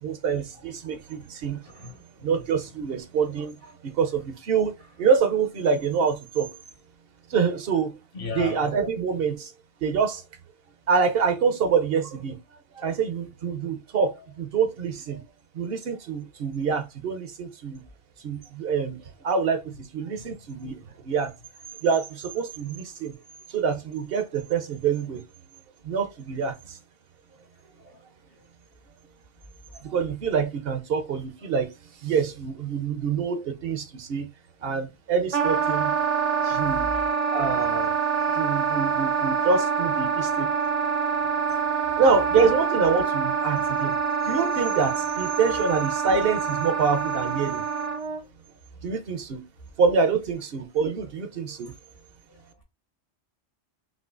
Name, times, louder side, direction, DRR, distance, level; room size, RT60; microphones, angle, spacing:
voice 1, 0.0-1.6 2.2-3.5 3.8-6.6 7.3-8.0 8.3-9.5 9.8-10.2 10.9-12.4 12.7-15.2 15.5-17.8 18.2-21.3 21.8-23.2 23.5-25.2 25.8-26.8 29.8-31.7 32.0-34.3 34.6-35.9 36.4-36.9 37.3-37.9 38.3-40.5 42.0-44.0 44.2-47.6 48.8-49.4 49.8-51.7, right 5 dB, 60° right, 0.9 m, -26 dB
voice 2, 1.6-2.0 8.1-8.6 52.3-52.6, left 4 dB, 60° left, 1.6 m, -35 dB
Wind instrument woodwind instrument, 35.3-48.2, right 6 dB, 40° right, 0.6 m, -26 dB
6.0 x 2.8 x 2.4 m
omnidirectional pair, 1.1 m